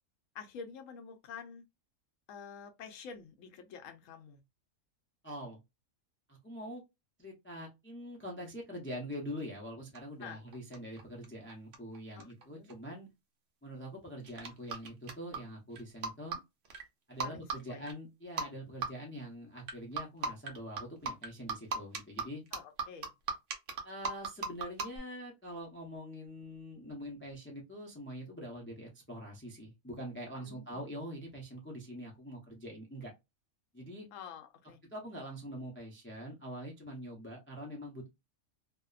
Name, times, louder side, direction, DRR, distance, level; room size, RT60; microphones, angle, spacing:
voice 1, 0.3-1.6 2.3-4.4 10.2-10.4 12.2-12.7 17.2-17.9 22.5-23.1 30.4-30.8 34.1-34.8, left 6 dB, 75° left, 0.9 m, -48 dB
voice 2, 5.2-5.6 6.3-6.8 7.2-13.1 13.6-16.4 17.1-22.4 23.8-33.1 33.7-34.1 34.9-38.1, equal, 15° left, 0.4 m, -44 dB
sound 1, 9.9-10.2 10.5-12.4 12.7-12.8 14.2-15.4 15.8-16.4 16.6-16.8 17.2-17.6 17.9-18.0 18.4-18.5 18.8-18.9 19.7-25.0, right 4 dB, 65° right, 1.0 m, -36 dB
2.7 x 2.1 x 2.3 m
omnidirectional pair, 1.4 m